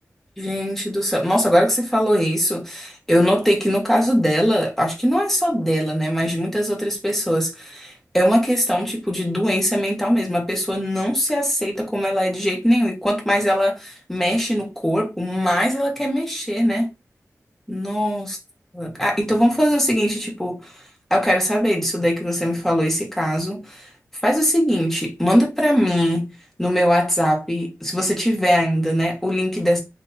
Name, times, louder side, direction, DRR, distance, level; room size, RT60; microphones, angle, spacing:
voice 1, 0.4-16.9 17.7-18.4 18.7-20.7 21.1-23.9 24.2-26.3 26.6-29.8, equal, 5° left, 1.7 m, -21 dB
3.8 x 3.3 x 2.8 m
wide cardioid pair, 80°, 6 cm